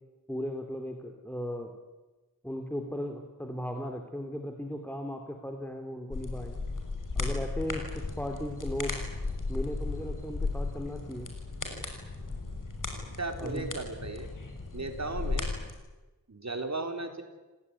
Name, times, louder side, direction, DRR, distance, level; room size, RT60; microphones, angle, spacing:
voice 1, 0.3-1.7 2.4-6.6 7.1-9.0 9.5-11.3 13.4-13.7, equal, 5° left, 4 dB, 2.9 m, -36 dB
sound 1, 6.1-15.7, left 3 dB, 60° left, 6.3 m, -35 dB
voice 2, 13.2-14.3 14.7-15.5 16.3-17.2, right 3 dB, 50° right, 5 dB, 4.2 m, -35 dB
28.0 x 18.5 x 9.9 m, 1.2 s
wide cardioid pair, 65°, 36 cm